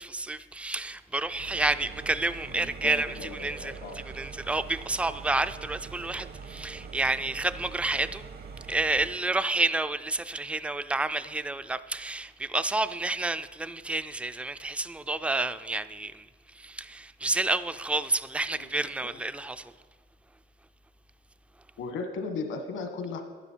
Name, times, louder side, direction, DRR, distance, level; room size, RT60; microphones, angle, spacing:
voice 1, 0.0-3.8 4.1-8.2 8.7-16.2 16.6-19.7, right 2 dB, 5° right, 0.3 m, -30 dB
sound 1, 1.2-9.3, right 5 dB, 55° right, 1.0 m, -43 dB
voice 2, 2.5-4.0 18.5-18.7 19.0-19.1 21.8-23.2, left 4 dB, 80° left, 1.3 m, -36 dB
10.5 x 9.8 x 4.5 m
cardioid pair, 90°, 20 cm